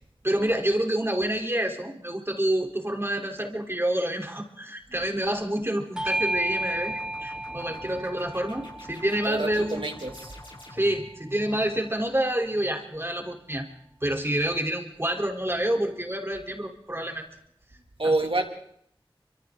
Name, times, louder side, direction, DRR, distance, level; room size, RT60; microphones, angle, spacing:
voice 1, 0.2-9.8 10.7-13.7 14.0-17.3 18.0-18.1, right 1 dB, 25° right, 3 dB, 3.8 m, -28 dB
sound 1, 5.9-11.1, left 1 dB, 60° left, 5.8 m, -47 dB
Bell / Doorbell, 6.0-10.8, right 1 dB, 10° right, 1.4 m, -33 dB
voice 2, 9.3-10.3 18.0-18.4, right 2 dB, 70° right, 4 dB, 2.5 m, -27 dB
29.5 x 25.0 x 3.9 m, 0.70 s
wide cardioid pair, 50°, 9 cm